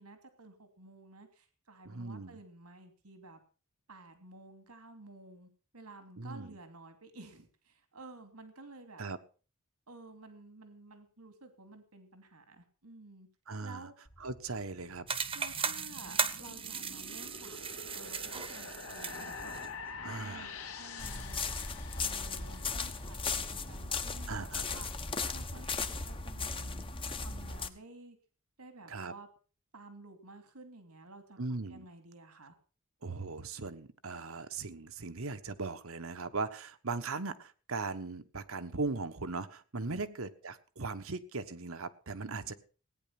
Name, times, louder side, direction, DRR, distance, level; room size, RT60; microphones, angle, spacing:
voice 1, 0.0-3.4 3.9-9.0 9.9-13.3 13.6-13.9 15.3-17.6 17.9-19.6 19.9-21.4 21.9-25.0 25.3-26.9 27.1-28.2 28.6-29.3 29.7-32.6 39.8-40.2 42.2-42.5, right 2 dB, 90° right, 8 dB, 2.8 m, -52 dB
voice 2, 1.8-2.4 6.2-6.6 9.0-9.2 13.5-13.9 14.2-15.1 20.0-20.5 24.3-24.8 28.9-29.1 31.4-31.8 33.0-42.5, right 3 dB, 65° right, 10 dB, 1.2 m, -39 dB
sound 1, 14.1-23.4, left 4 dB, 75° left, 2.3 m, -47 dB
sound 2, 15.1-19.7, right 6 dB, 25° right, 1.1 m, -37 dB
sound 3, 21.0-27.7, left 4 dB, 25° left, 1.2 m, -37 dB
17.5 x 9.8 x 6.0 m, 0.38 s
head